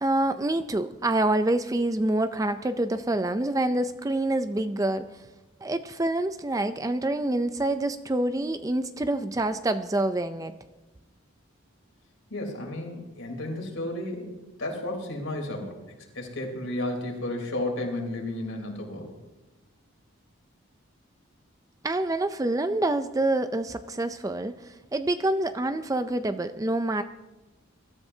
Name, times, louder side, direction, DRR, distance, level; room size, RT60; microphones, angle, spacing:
voice 1, 0.0-5.2 5.6-10.5 21.8-27.0, right 1 dB, 15° right, 10 dB, 0.4 m, -27 dB
voice 2, 12.3-15.8 16.2-19.1, left 1 dB, 70° left, 1 dB, 3.5 m, -33 dB
24.0 x 13.5 x 2.8 m, 1.1 s
head